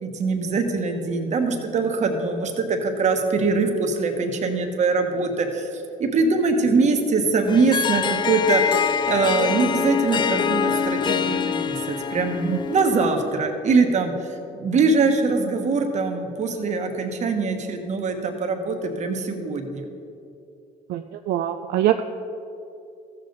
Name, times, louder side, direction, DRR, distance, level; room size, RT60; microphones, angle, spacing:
voice 1, 0.0-5.7 6.0-14.1 14.5-19.9, right 4 dB, 45° right, 4 dB, 1.2 m, -23 dB
Harp, 7.5-13.3, left 7 dB, 30° left, 0.3 m, -25 dB
voice 2, 20.9-22.0, right 12 dB, 70° right, 6 dB, 0.4 m, -23 dB
14.5 x 7.0 x 4.0 m, 2.6 s
cardioid pair, 110°, 17 cm